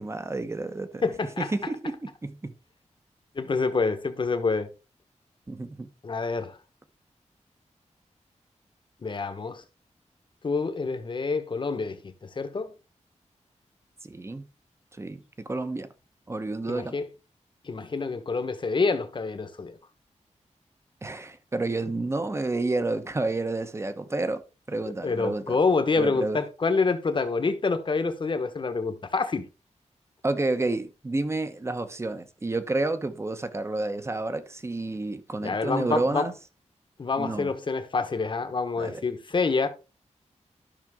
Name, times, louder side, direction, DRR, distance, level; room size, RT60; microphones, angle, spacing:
voice 1, 0.0-1.0 1.4-2.5 5.5-5.9 14.0-14.5 15.0-15.9 16.3-17.0 21.0-24.4 24.7-25.6 26.0-26.4 30.2-36.3 37.2-37.5 38.8-39.0, right 2 dB, 20° right, 0.9 m, -30 dB
voice 2, 1.0-1.5 3.3-4.7 6.0-6.6 9.0-9.6 10.4-12.7 16.7-17.0 17.6-19.7 25.0-29.5 35.4-36.3 37.0-39.7, left 4 dB, 40° left, 1.1 m, -27 dB
12.0 x 5.9 x 3.6 m
wide cardioid pair, 170°, 12 cm